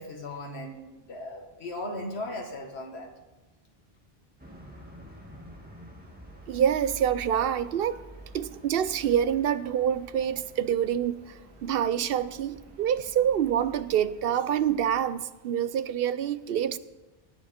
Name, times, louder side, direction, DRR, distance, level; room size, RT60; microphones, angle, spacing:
voice 1, 0.0-3.1, left 1 dB, 85° left, 1.9 m, -37 dB
sound 1, 4.4-15.1, right 1 dB, 10° right, 2.0 m, -49 dB
voice 2, 6.5-8.0 8.3-11.3 11.6-16.8, right 9 dB, 70° right, 0.8 m, -26 dB
18.5 x 9.1 x 4.3 m
omnidirectional pair, 1.1 m